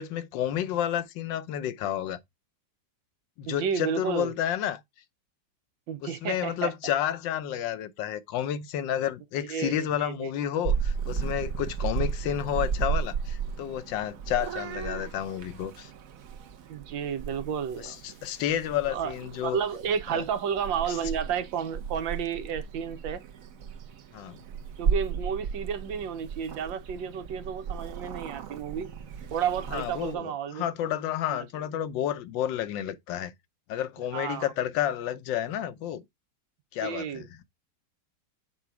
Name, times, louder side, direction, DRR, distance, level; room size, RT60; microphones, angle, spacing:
voice 1, 0.0-2.2 3.4-4.8 6.0-15.9 17.8-19.6 20.1-20.2 20.9-21.0 24.1-24.4 29.7-33.3 33.7-36.0 36.7-37.4, left 10 dB, 85° left, 1.4 m, -30 dB
voice 2, 3.4-4.3 5.9-6.7 9.5-10.3 16.7-18.0 18.9-19.1 19.4-23.2 24.8-28.9 29.3-30.6 31.3-31.4 34.1-34.5 36.8-37.3, right 7 dB, 90° right, 1.6 m, -31 dB
Purr / Meow, 10.6-30.1, right 6 dB, 60° right, 1.0 m, -34 dB
7.2 x 3.8 x 4.6 m
omnidirectional pair, 2.0 m